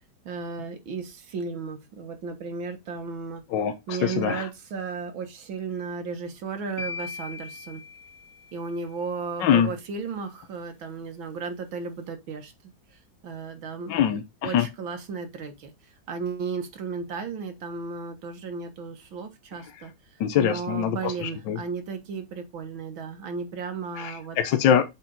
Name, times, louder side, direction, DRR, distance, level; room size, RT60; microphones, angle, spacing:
voice 1, 0.2-3.4 3.9-7.8 8.5-12.5 13.2-14.0 14.4-15.7 16.1-19.9 20.3-24.4, right 5 dB, 90° right, 2.2 m, -34 dB
voice 2, 3.5-4.4 9.4-9.7 13.9-14.7 20.2-21.6 24.0-24.8, left 9 dB, 75° left, 1.5 m, -24 dB
sound 1, 6.8-8.9, left 4 dB, 45° left, 1.2 m, -39 dB
7.2 x 4.5 x 3.9 m
omnidirectional pair, 2.1 m